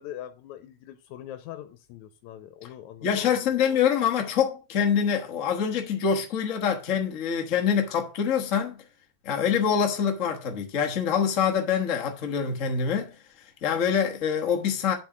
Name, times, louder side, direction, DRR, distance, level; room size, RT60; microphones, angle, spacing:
voice 1, 0.0-3.4 9.4-9.5, left 11 dB, 90° left, 2.1 m, -42 dB
voice 2, 3.0-8.8 9.2-13.1 13.6-14.9, left 7 dB, 60° left, 0.8 m, -25 dB
8.3 x 4.3 x 5.9 m
omnidirectional pair, 3.3 m